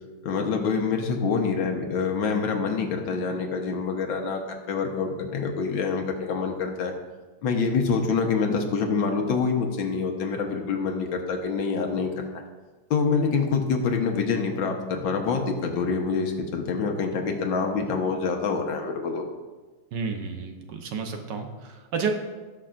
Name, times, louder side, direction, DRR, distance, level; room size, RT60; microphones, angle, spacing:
voice 1, 0.2-4.4 4.7-6.9 7.4-12.3 12.9-19.3, left 5 dB, 75° left, 3 dB, 1.8 m, -26 dB
voice 2, 19.9-22.1, right 5 dB, 65° right, 4 dB, 1.4 m, -31 dB
18.0 x 6.1 x 2.5 m, 1.3 s
omnidirectional pair, 2.1 m